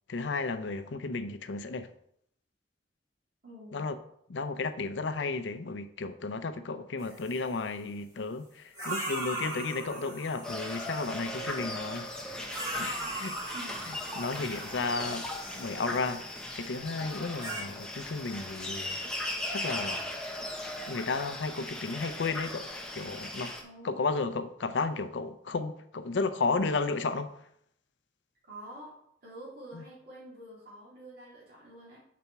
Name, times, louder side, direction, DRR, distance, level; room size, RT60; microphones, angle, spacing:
voice 1, 0.1-1.9 3.7-4.0 4.3-12.1 12.5-13.4 13.9-15.3 15.5-16.2 16.5-19.0 19.5-20.0 20.9-22.6 22.9-23.5 23.8-27.4 29.7-29.8, left 3 dB, 80° left, 10 dB, 0.5 m, -33 dB
voice 2, 3.4-3.9 13.5-13.8 23.6-24.3 28.4-28.9 29.2-32.0, right 1 dB, 50° right, -8 dB, 2.4 m, -47 dB
sound 1, 7.0-7.6 8.7-11.6 12.4-16.4 17.1-17.6, right 1 dB, 20° right, 2.6 m, -39 dB
sound 2, 10.4-23.6, left 1 dB, 5° left, 0.7 m, -38 dB
6.8 x 4.2 x 4.5 m, 0.71 s
head